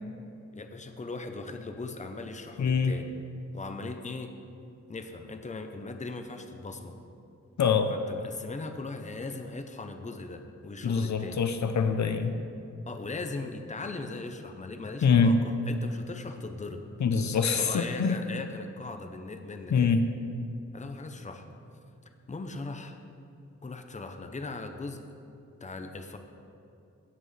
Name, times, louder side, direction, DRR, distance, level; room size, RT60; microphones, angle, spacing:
voice 1, 0.5-3.2 3.5-4.3 4.9-7.0 7.9-11.4 12.9-16.8 17.6-19.9 20.7-21.4 22.3-23.0 23.6-25.0 25.6-26.2, left 3 dB, 25° left, 6 dB, 0.7 m, -39 dB
voice 2, 2.6-2.9 7.6-7.9 10.8-12.4 15.0-15.4 17.0-18.1 19.7-20.0, left 5 dB, 70° left, 7 dB, 0.6 m, -24 dB
17.0 x 7.9 x 3.3 m, 2.6 s
wide cardioid pair, 130°, 29 cm